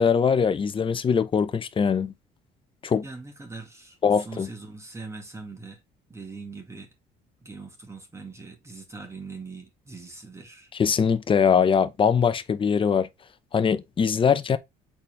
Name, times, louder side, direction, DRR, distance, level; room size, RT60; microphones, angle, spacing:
voice 1, 0.0-2.1 2.8-3.0 4.0-4.5 10.8-13.1 13.5-14.6, left 6 dB, 30° left, 0.8 m, -22 dB
voice 2, 3.0-5.8 6.1-6.9 7.4-10.7, right 3 dB, 15° right, 2.1 m, -41 dB
6.8 x 4.3 x 3.3 m
cardioid pair, 120°, 18 cm